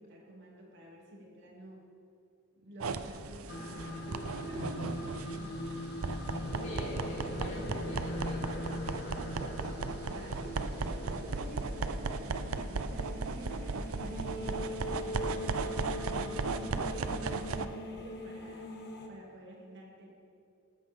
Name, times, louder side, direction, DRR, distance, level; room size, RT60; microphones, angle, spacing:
voice 1, 0.0-1.8 2.6-5.6 10.0-18.7 19.1-20.1, equal, 55° right, -2 dB, 2.8 m, -50 dB
sound 1, 2.8-17.7, right 4 dB, 75° right, 0.6 m, -36 dB
sound 2, 3.5-19.1, left 1 dB, 50° left, 1.5 m, -41 dB
voice 2, 6.2-8.5 8.8-9.8, left 1 dB, 35° left, -5 dB, 3.9 m, -48 dB
18.5 x 14.0 x 3.8 m, 2.5 s
head